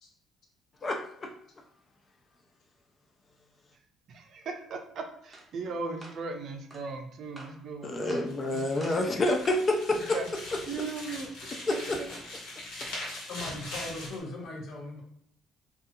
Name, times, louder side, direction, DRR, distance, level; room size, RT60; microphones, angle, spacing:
voice 1, 0.8-1.3 7.8-10.2 11.7-12.0, left 2 dB, 30° left, 2 dB, 0.3 m, -28 dB
voice 2, 4.1-9.0 10.1-10.3 10.7-11.5, right 4 dB, 55° right, 3 dB, 0.5 m, -38 dB
sound 1, 5.3-5.5 6.0-6.2 6.7-6.9 7.4-7.6 8.1-8.3 8.8-9.1 9.5-9.7 10.1-10.4, right 1 dB, 10° right, 0.7 m, -48 dB
sound 2, 8.3-14.2, left 1 dB, 90° left, 1.1 m, -41 dB
voice 3, 13.3-15.0, left 2 dB, 60° left, 0 dB, 0.7 m, -39 dB
2.7 x 2.4 x 2.5 m, 0.67 s
cardioid pair, 115°, 0 cm